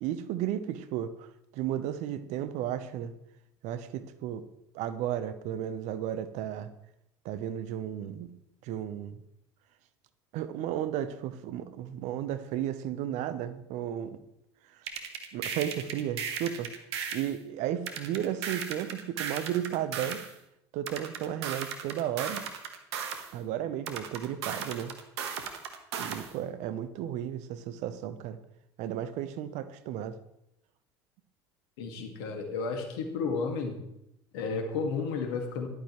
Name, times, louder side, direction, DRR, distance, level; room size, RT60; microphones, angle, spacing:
voice 1, 0.0-3.1 3.6-4.4 4.7-6.7 7.2-8.3 8.6-9.2 10.3-14.2 14.8-14.9 15.3-16.7 17.1-20.2 20.7-22.4 23.3-24.9 26.0-28.4 28.8-30.2, right 10 dB, 55° right, 12 dB, 0.9 m, -34 dB
sound 1, 14.9-17.3 17.9-20.3 20.9-23.3 23.9-26.3, right 7 dB, 75° right, 1.5 m, -36 dB
voice 2, 31.8-33.8 34.3-35.7, left 4 dB, 65° left, 4 dB, 2.1 m, -32 dB
14.0 x 12.0 x 3.2 m, 0.82 s
hypercardioid pair, 70°, 14 cm